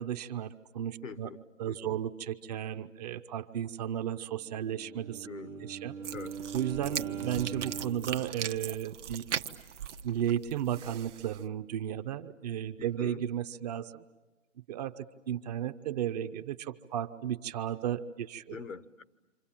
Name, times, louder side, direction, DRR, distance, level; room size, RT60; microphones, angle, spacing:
voice 1, 0.0-1.3 1.6-5.3 5.6-5.9 6.5-9.3 10.0-14.0 14.7-18.6, right 10 dB, 30° right, 10 dB, 0.9 m, -34 dB
voice 2, 1.0-2.0 5.2-5.7 6.1-6.4 12.8-13.2 18.5-19.0, left 5 dB, 85° left, 13 dB, 1.2 m, -44 dB
Bowed string instrument, 4.5-8.1, right 7 dB, 90° right, 1.6 m, -41 dB
sound 1, 6.0-11.5, right 8 dB, 65° right, 1.1 m, -39 dB
28.0 x 26.5 x 7.4 m, 1.2 s
figure-of-eight pair, 135°, 38 cm